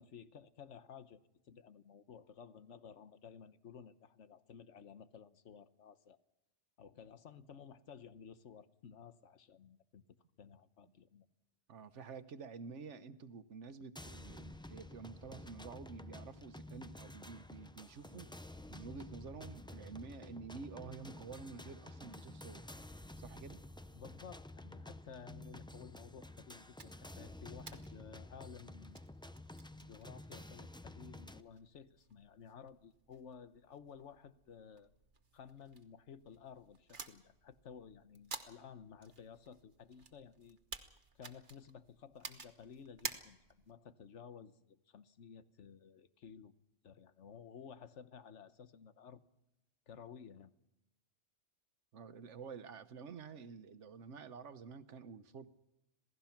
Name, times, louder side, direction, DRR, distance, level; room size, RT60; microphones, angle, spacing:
voice 1, 0.0-6.2 6.8-10.0 10.4-11.3 23.9-29.0 29.8-34.9 35.3-40.6 41.2-46.5 46.8-49.2 49.9-50.5, left 7 dB, 90° left, 12 dB, 1.3 m, -54 dB
voice 2, 11.7-18.3 18.7-22.6 23.2-23.6 51.9-55.5, right 5 dB, 85° right, 12 dB, 1.3 m, -50 dB
sound 1, 14.0-31.4, left 1 dB, 5° left, 0.4 m, -51 dB
sound 2, 26.8-43.8, right 4 dB, 45° right, 1.4 m, -53 dB
27.0 x 17.5 x 5.9 m, 0.90 s
omnidirectional pair, 1.2 m